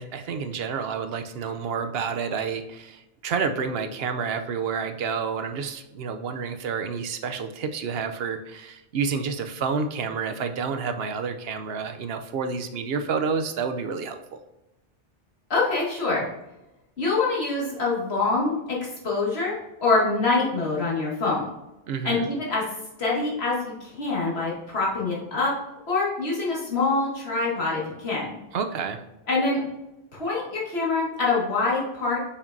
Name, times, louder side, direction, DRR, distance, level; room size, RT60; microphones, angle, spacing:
voice 1, 0.0-14.4 21.9-22.3 28.5-29.0, right 5 dB, 75° right, 7 dB, 0.8 m, -29 dB
voice 2, 15.5-16.3 17.0-18.8 19.0-19.6 19.8-21.5 22.0-22.6 23.0-25.5 25.9-28.3 29.3-29.6 30.1-32.2, left 3 dB, 85° left, -5 dB, 2.1 m, -25 dB
6.4 x 5.8 x 2.6 m, 0.94 s
omnidirectional pair, 1.0 m